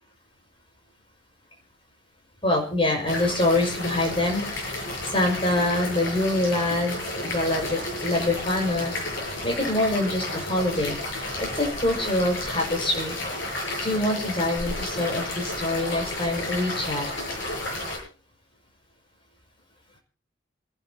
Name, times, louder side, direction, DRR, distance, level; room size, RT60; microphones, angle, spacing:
voice 1, 2.4-4.4 4.8-8.9 9.4-13.2 13.8-17.1, left 1 dB, 30° left, 1 dB, 5.6 m, -25 dB
sound 1, 3.1-18.0, left 1 dB, 85° left, 8.0 m, -32 dB
28.5 x 10.5 x 2.9 m, 0.35 s
head